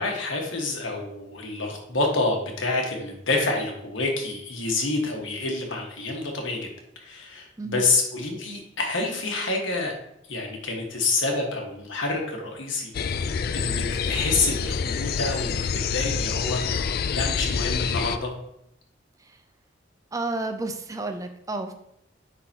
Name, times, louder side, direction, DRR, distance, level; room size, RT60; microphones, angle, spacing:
voice 1, 0.0-6.6 6.9-9.9 10.3-18.3, left 3 dB, 75° left, 1 dB, 1.5 m, -28 dB
sound 1, 12.9-18.2, left 6 dB, 50° left, 0.3 m, -27 dB
voice 2, 20.1-21.7, right 2 dB, 15° right, 6 dB, 0.5 m, -31 dB
9.8 x 3.9 x 2.8 m, 0.79 s
head